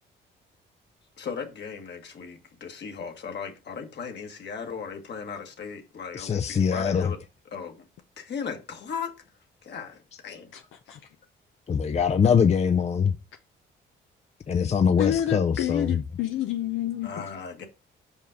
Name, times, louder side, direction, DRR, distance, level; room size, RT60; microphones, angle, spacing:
voice 1, 1.2-7.2 7.5-7.8 8.2-9.1 9.6-10.5 17.0-17.7, left 6 dB, 60° left, 1.7 m, -37 dB
voice 2, 6.1-7.1 11.7-13.1 14.5-16.0, left 7 dB, 35° left, 0.5 m, -23 dB
voice 3, 15.0-17.3, left 11 dB, 80° left, 0.7 m, -28 dB
5.6 x 5.4 x 5.0 m
cardioid pair, 90°, 20 cm